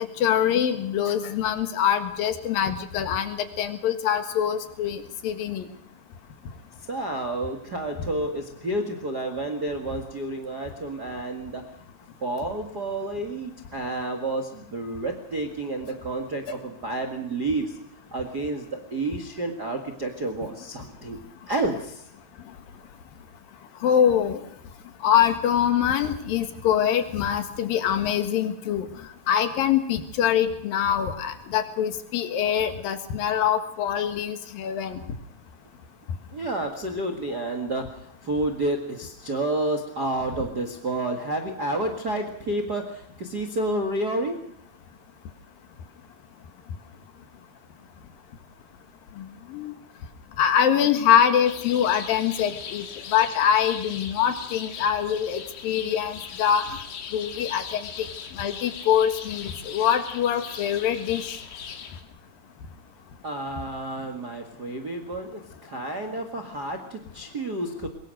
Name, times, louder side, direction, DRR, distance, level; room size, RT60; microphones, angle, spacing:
voice 1, 0.0-5.7 23.8-24.4 25.0-28.9 29.3-35.0 49.2-49.7 50.4-56.6 57.1-58.1 58.3-61.4, left 9 dB, 60° left, 7 dB, 2.9 m, -24 dB
voice 2, 6.9-11.6 12.2-17.8 18.1-21.2 21.5-22.0 36.3-44.4 63.2-67.9, right 2 dB, 75° right, 6 dB, 0.9 m, -30 dB
sound 1, 51.5-62.0, left 7 dB, 80° left, 4.6 m, -39 dB
23.0 x 21.5 x 6.5 m, 0.71 s
omnidirectional pair, 5.2 m